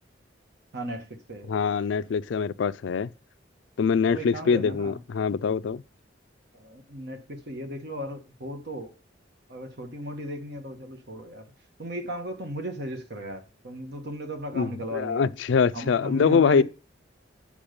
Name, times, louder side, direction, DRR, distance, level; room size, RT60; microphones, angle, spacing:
voice 1, 0.7-1.6 4.1-5.0 6.5-8.9 9.5-11.5 11.8-15.3 15.7-16.6, equal, 60° right, 1.4 m, -36 dB
voice 2, 1.5-3.1 3.8-5.8 14.5-16.6, left 6 dB, 75° left, 0.4 m, -24 dB
8.6 x 5.3 x 5.2 m
head